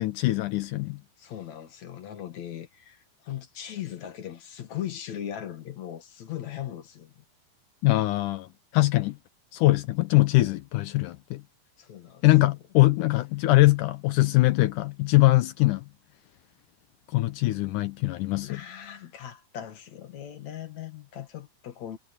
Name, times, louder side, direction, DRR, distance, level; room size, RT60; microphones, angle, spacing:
voice 1, 0.0-1.0 7.8-9.2 9.5-11.4 12.2-15.8 17.1-18.6, left 19 dB, 85° left, 1.8 m, -22 dB
voice 2, 1.2-7.2 11.8-12.2 18.4-22.0, left 10 dB, 50° left, 2.7 m, -39 dB
omnidirectional pair, 4.7 m